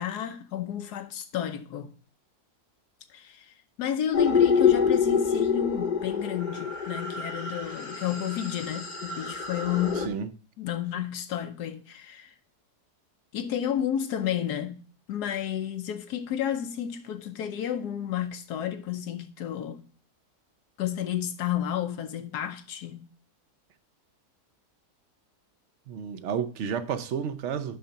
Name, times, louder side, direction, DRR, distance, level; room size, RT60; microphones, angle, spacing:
voice 1, 0.0-1.9 3.1-10.1 10.6-12.3 13.3-14.8 15.1-19.9 20.8-23.1, left 10 dB, 85° left, 1.3 m, -31 dB
sound 1, 4.1-10.1, left 6 dB, 40° left, 0.8 m, -26 dB
voice 2, 10.0-10.3 25.9-27.8, right 7 dB, 60° right, 0.9 m, -31 dB
5.8 x 5.7 x 6.4 m
omnidirectional pair, 1.7 m